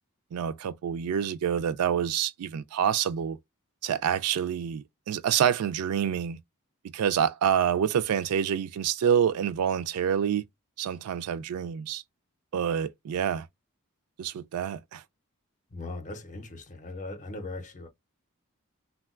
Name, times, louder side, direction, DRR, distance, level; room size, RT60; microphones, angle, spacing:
voice 1, 0.3-3.4 3.8-6.4 6.9-10.4 10.8-12.0 12.5-13.5 14.2-15.0, right 8 dB, 85° right, 0.3 m, -27 dB
voice 2, 15.7-17.9, left 2 dB, 35° left, 0.5 m, -39 dB
3.7 x 2.2 x 2.3 m
head